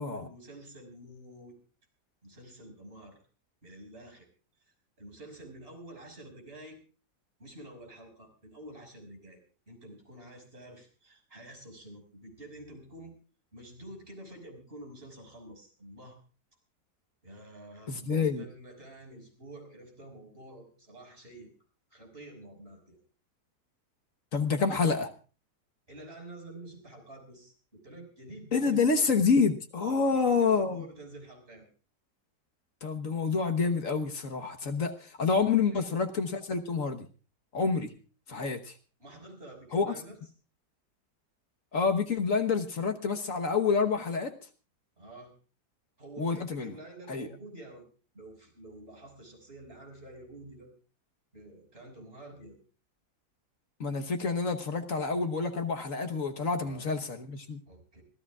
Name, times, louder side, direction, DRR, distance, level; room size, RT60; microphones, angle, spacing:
voice 1, 0.0-1.6 2.2-3.2 3.6-4.3 5.0-6.8 7.4-13.1 13.5-16.2 17.2-21.5 21.9-23.0 25.9-28.8 29.8-31.7 35.7-35.8 39.0-40.2 45.0-45.3 46.0-47.8 48.1-50.7 51.3-52.6 56.6-56.9 57.7-58.0, right 1 dB, 35° right, 2 dB, 5.9 m, -48 dB
voice 2, 17.9-18.5 24.3-25.1 28.5-30.8 32.8-37.1 37.5-37.9 38.3-38.7 39.7-39.9 41.7-44.3 46.2-46.7 47.1-47.3 53.8-57.6, left 5 dB, 55° left, 5 dB, 1.6 m, -28 dB
26.0 x 16.0 x 2.4 m, 0.36 s
omnidirectional pair, 1.8 m